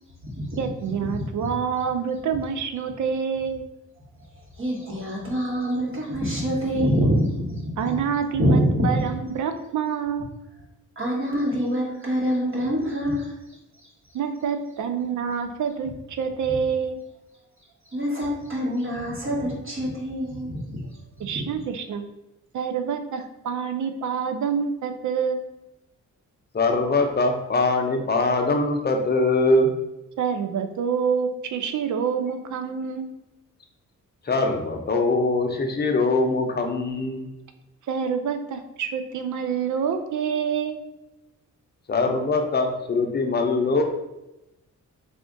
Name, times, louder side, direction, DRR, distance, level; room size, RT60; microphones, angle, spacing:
voice 1, 0.6-3.6 7.8-10.4 14.1-17.0 21.2-22.1 22.5-25.5 30.2-33.1 37.9-40.8, right 7 dB, 70° right, 8 dB, 0.5 m, -27 dB
voice 2, 4.6-7.9 8.3-9.1 11.0-13.3 17.9-20.9 21.3-21.4, equal, 40° right, -4 dB, 1.2 m, -25 dB
voice 3, 26.5-29.7 34.2-37.3 41.9-43.8, left 2 dB, 30° left, 3 dB, 0.6 m, -22 dB
3.5 x 2.4 x 3.7 m, 0.94 s
cardioid pair, 80°, 31 cm